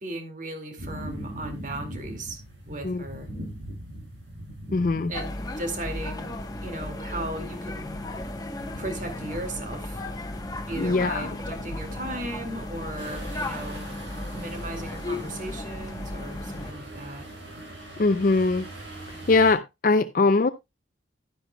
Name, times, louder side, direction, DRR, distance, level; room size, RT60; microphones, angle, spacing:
voice 1, 0.0-2.4 2.7-3.3 5.1-6.4 6.6-8.0 8.8-10.0 10.7-13.9 14.3-17.3, right 1 dB, 40° right, 2.1 m, -36 dB
sound 1, 0.8-19.5, right 1 dB, 70° right, 6.3 m, -42 dB
voice 2, 4.7-5.1 10.8-11.3 18.0-18.7 19.3-20.5, left 3 dB, 45° left, 0.4 m, -21 dB
sound 2, 5.1-16.7, left 1 dB, 20° left, 1.0 m, -35 dB
11.5 x 10.0 x 2.2 m
head